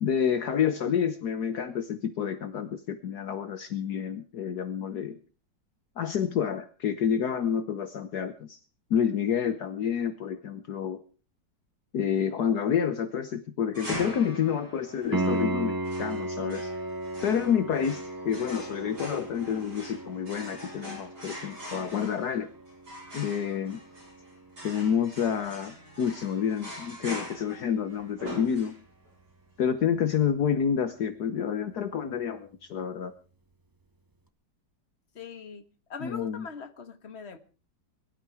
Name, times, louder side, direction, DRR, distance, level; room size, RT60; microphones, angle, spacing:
voice 1, 0.0-5.2 6.0-8.6 8.9-11.0 11.9-16.7 17.2-22.5 23.1-23.8 24.6-28.7 29.6-33.1 36.0-36.5, left 8 dB, 65° left, 10 dB, 1.5 m, -29 dB
sound 1, 13.7-29.1, equal, 65° right, 7.7 m, -43 dB
Piano, 15.1-25.8 29.1-29.2, right 2 dB, 25° right, 0.5 m, -36 dB
voice 2, 35.2-35.6 35.9-37.4, left 6 dB, 40° left, 9 dB, 1.8 m, -41 dB
21.5 x 12.5 x 4.8 m, 0.38 s
omnidirectional pair, 1.9 m